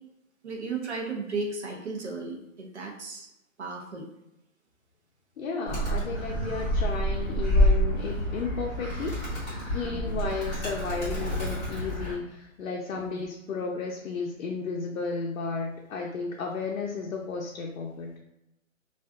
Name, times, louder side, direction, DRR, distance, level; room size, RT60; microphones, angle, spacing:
voice 1, 0.4-3.3 3.6-4.1 9.9-10.4 12.9-13.3, right 3 dB, 55° right, 1 dB, 0.6 m, -35 dB
voice 2, 5.4-9.2 9.7-18.1, left 4 dB, 80° left, -1 dB, 0.5 m, -33 dB
Animal, 5.7-12.1, equal, 10° left, 0.8 m, -28 dB
2.4 x 2.4 x 2.3 m, 0.86 s
hypercardioid pair, 175°, 40 cm